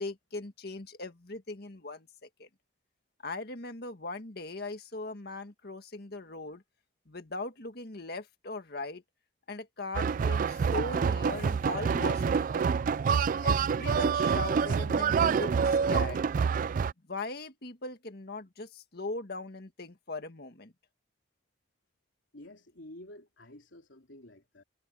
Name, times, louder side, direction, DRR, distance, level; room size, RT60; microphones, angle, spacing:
voice 1, 0.0-2.5 3.2-6.6 7.1-9.0 9.5-12.8 13.4-16.2 17.1-20.7, left 3 dB, 55° left, 1.8 m, -39 dB
sound 1, 9.9-16.9, right 6 dB, 45° right, 0.3 m, -27 dB
voice 2, 22.3-24.6, left 1 dB, 80° left, 3.3 m, -50 dB
head